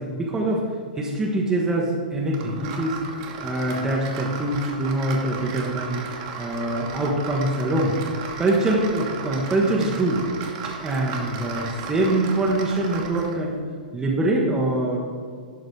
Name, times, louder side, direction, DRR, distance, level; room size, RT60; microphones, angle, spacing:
voice 1, 0.0-3.0 3.4-6.0 6.4-8.0 8.4-10.2 10.6-13.6 13.9-15.0, right 1 dB, 10° right, -2 dB, 1.0 m, -24 dB
sound 1, 2.3-13.4, right 5 dB, 40° right, 1.3 m, -35 dB
11.5 x 3.9 x 5.1 m, 2.1 s
figure-of-eight pair, 105°, 5 cm